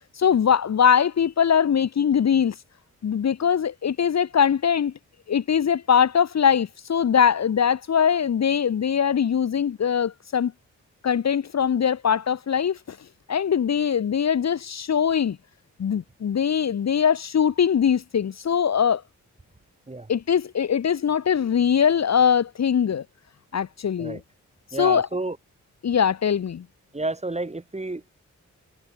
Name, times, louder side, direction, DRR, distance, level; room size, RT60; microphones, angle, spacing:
voice 1, 0.2-2.5 3.0-4.9 5.3-10.5 11.0-13.0 13.3-15.4 15.8-19.0 20.1-23.0 23.5-24.2 24.8-25.1 25.8-26.6, left 7 dB, 60° left, 0.9 m, -21 dB
voice 2, 24.7-25.4 26.9-28.1, right 2 dB, 20° right, 6.2 m, -30 dB
wide cardioid pair, 105°, 30 cm